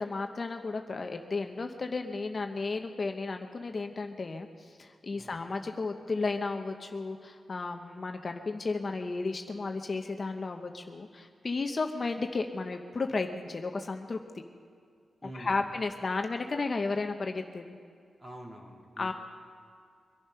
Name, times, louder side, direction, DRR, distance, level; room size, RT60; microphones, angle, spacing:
voice 1, 0.0-14.2 15.3-17.8 19.0-19.1, left 3 dB, 40° left, 5 dB, 0.8 m, -33 dB
voice 2, 15.2-15.8 18.2-19.1, right 1 dB, 25° right, -1 dB, 3.0 m, -46 dB
23.5 x 10.5 x 5.6 m, 2.3 s
wide cardioid pair, 105°, 0 cm